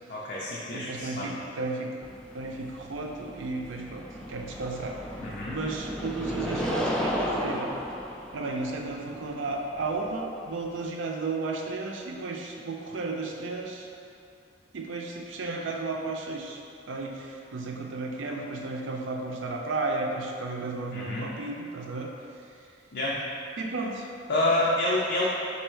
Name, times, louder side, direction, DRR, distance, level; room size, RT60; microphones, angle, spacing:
voice 1, 0.1-1.4 5.2-5.6 20.9-21.3 22.9-23.2 24.3-25.3, left 1 dB, 55° left, -6 dB, 0.5 m, -28 dB
voice 2, 0.7-2.0 2.3-4.0 4.3-5.0 5.5-7.7 8.3-13.9 14.7-16.6 16.9-22.1 23.6-24.2, right 3 dB, 85° right, 1 dB, 0.5 m, -33 dB
sound 1, 2.0-10.9, equal, 5° left, 0.4 m, -34 dB
4.3 x 2.7 x 4.4 m, 2.4 s
head